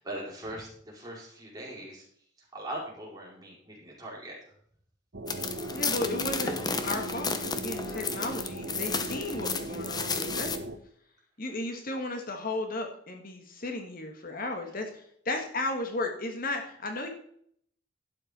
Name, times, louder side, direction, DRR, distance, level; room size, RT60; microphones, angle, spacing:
voice 1, 0.0-2.0 2.4-4.4 8.1-8.2, right 1 dB, 20° right, -4 dB, 4.8 m, -40 dB
sound 1, 5.1-10.8, right 1 dB, 60° right, 1.1 m, -38 dB
sound 2, 5.3-10.6, left 5 dB, 20° left, 0.9 m, -33 dB
voice 2, 5.7-10.5 11.4-17.1, left 2 dB, 50° left, 4 dB, 1.6 m, -34 dB
12.0 x 8.8 x 4.3 m, 0.64 s
head